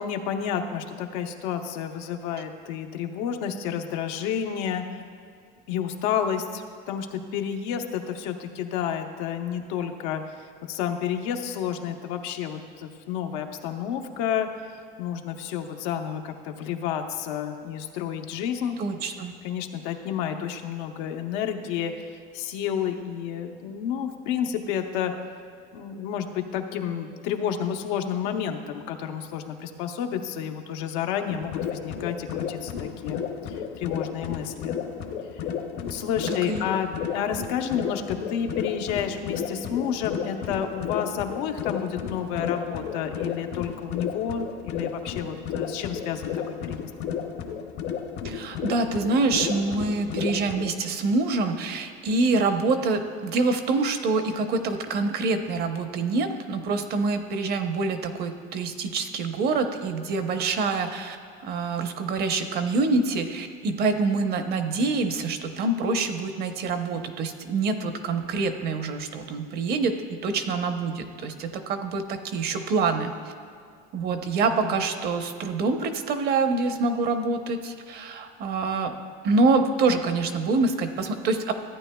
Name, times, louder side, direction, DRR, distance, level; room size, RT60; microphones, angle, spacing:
voice 1, 0.0-4.8 5.7-14.5 15.0-18.8 19.4-25.1 25.7-34.8 35.8-46.9 74.6-74.8, left 8 dB, 90° left, 5 dB, 0.8 m, -30 dB
voice 2, 18.8-19.3 36.3-36.6 48.2-61.2 61.4-73.1 73.9-78.9 79.2-81.5, right 3 dB, 50° right, 7 dB, 0.8 m, -26 dB
sound 1, 31.3-50.7, left 7 dB, 55° left, 0.8 m, -33 dB
14.5 x 9.1 x 2.2 m, 2.3 s
cardioid pair, 145°, 21 cm